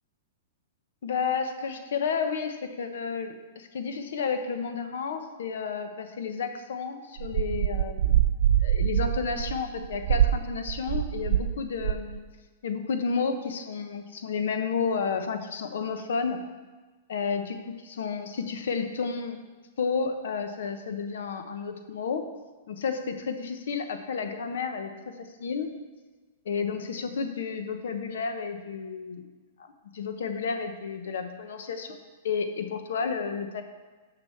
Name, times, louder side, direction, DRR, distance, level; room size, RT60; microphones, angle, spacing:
voice 1, 1.0-8.2 8.6-12.2 12.6-16.4 17.1-19.4 19.8-22.3 22.7-25.7 26.5-29.3 29.6-32.0 32.2-33.6, left 5 dB, 75° left, 7 dB, 1.0 m, -31 dB
sound 1, 7.2-11.5 11.8-12.2, right 11 dB, 60° right, 0.4 m, -25 dB
6.8 x 6.1 x 7.2 m, 1.3 s
hypercardioid pair, 160°, 0 cm